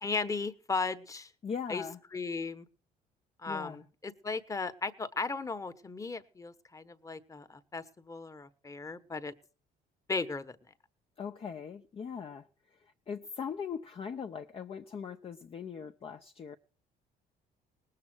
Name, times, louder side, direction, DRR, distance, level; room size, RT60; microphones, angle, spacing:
voice 1, 0.0-1.3 1.7-1.8 2.1-2.7 3.4-9.3 10.1-10.6, left 4 dB, 20° left, 1.1 m, -36 dB
voice 2, 1.4-2.0 3.5-3.8 11.2-12.5 13.1-16.6, left 6 dB, 35° left, 0.7 m, -40 dB
19.0 x 7.6 x 6.2 m
cardioid pair, 110°, 17 cm